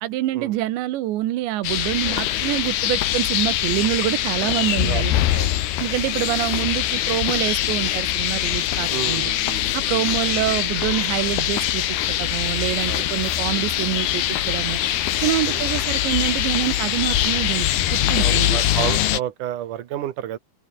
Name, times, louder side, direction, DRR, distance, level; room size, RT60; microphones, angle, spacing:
voice 1, 0.0-5.1 5.8-9.2 9.7-11.8 12.2-14.8 15.2-17.7 17.9-18.6, right 14 dB, 85° right, 3.6 m, -26 dB
sound 1, 1.6-19.2, left 12 dB, 70° left, 3.3 m, -23 dB
voice 2, 4.9-5.5 8.9-10.1 12.9-13.1 15.4-15.7 18.2-20.4, right 12 dB, 60° right, 2.4 m, -31 dB
open air
omnidirectional pair, 5.0 m